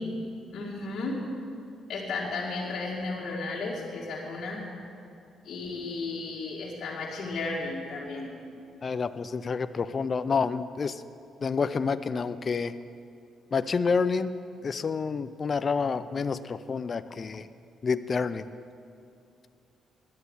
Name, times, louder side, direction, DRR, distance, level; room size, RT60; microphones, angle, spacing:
voice 1, 0.5-1.2 1.9-4.6 5.4-8.3, left 3 dB, 60° left, -6 dB, 2.0 m, -34 dB
voice 2, 8.8-11.0 11.4-12.8 13.5-14.3 14.6-17.5 17.8-18.5, left 5 dB, 40° left, 13 dB, 0.4 m, -28 dB
10.5 x 8.0 x 9.7 m, 2.5 s
cardioid pair, 90°, 0 cm